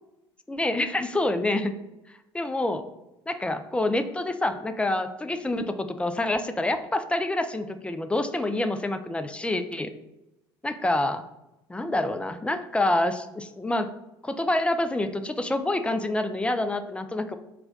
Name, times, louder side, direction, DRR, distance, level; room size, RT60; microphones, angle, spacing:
voice 1, 0.5-1.7 2.3-2.8 3.3-9.9 10.6-11.2 11.7-13.9 14.2-17.3, left 2 dB, 10° left, 9 dB, 0.4 m, -27 dB
4.4 x 2.2 x 3.6 m, 0.93 s
figure-of-eight pair, 60°, 13 cm